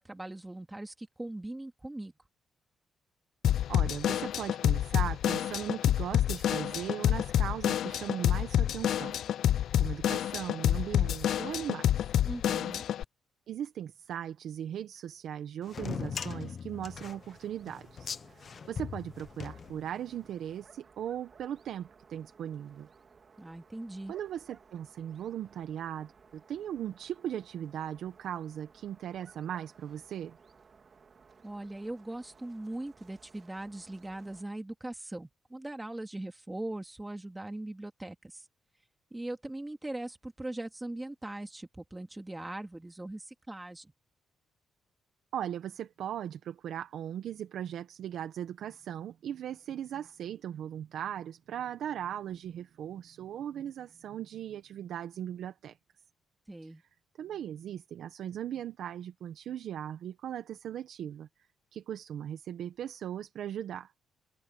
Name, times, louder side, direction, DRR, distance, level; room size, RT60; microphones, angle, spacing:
voice 1, 0.0-2.1 12.3-12.8 23.4-24.1 31.4-38.5 39.1-43.9 56.5-56.8, right 1 dB, 15° right, 3.1 m, -40 dB
Drum kit / Drum, 3.4-13.0, left 11 dB, 75° left, 0.4 m, -28 dB
voice 2, 3.7-9.2 9.8-12.1 13.5-22.9 24.1-30.4 45.3-55.8 56.6-56.7 57.2-61.3 61.7-63.9, right 10 dB, 75° right, 1.2 m, -38 dB
sound 1, 15.7-20.2, left 6 dB, 50° left, 1.0 m, -40 dB
sound 2, 16.7-34.4, right 5 dB, 45° right, 3.4 m, -59 dB
open air
cardioid pair, 75°, 0 cm